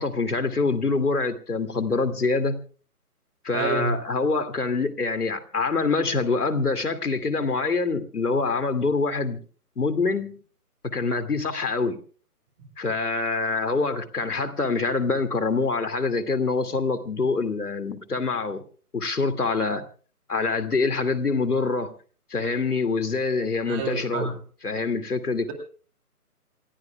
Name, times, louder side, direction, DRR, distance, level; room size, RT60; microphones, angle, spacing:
voice 1, 0.0-2.6 3.4-9.4 9.8-10.4 10.8-12.0 12.8-18.6 18.9-19.9 20.3-21.9 22.3-24.3 24.6-25.5, left 4 dB, 75° left, 2.6 m, -25 dB
voice 2, 3.5-4.0 23.6-24.3, right 4 dB, 10° right, 2.0 m, -28 dB
27.5 x 15.5 x 2.3 m
figure-of-eight pair, 155°, 46 cm